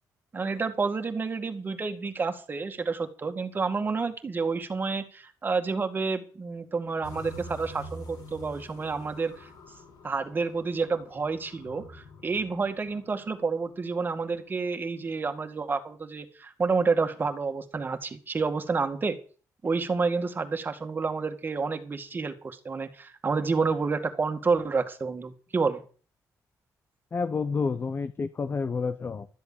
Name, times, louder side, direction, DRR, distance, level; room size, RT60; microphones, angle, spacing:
voice 1, 0.3-9.5 10.0-19.2 19.6-25.8, right 4 dB, 30° right, 2.1 m, -29 dB
sound 1, 7.0-14.1, left 1 dB, 90° left, 5.1 m, -47 dB
voice 2, 27.1-29.3, left 5 dB, 35° left, 0.9 m, -29 dB
13.0 x 8.0 x 8.7 m
cardioid pair, 115°, 7 cm